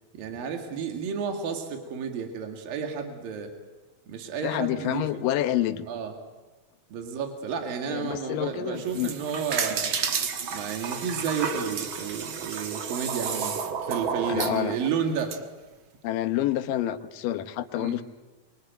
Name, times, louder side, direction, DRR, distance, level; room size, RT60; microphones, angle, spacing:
voice 1, 0.1-3.5 4.1-5.1 5.9-6.1 6.9-9.9 10.5-13.6 13.9-15.4 17.8-18.0, right 6 dB, 75° right, 4 dB, 3.9 m, -31 dB
voice 2, 4.4-5.9 7.9-9.1 14.3-14.8 16.0-18.0, left 13 dB, 75° left, 10 dB, 2.6 m, -28 dB
sound 1, 8.8-15.4, right 6 dB, 50° right, 1.6 m, -31 dB
26.0 x 24.0 x 9.2 m, 1.2 s
omnidirectional pair, 4.2 m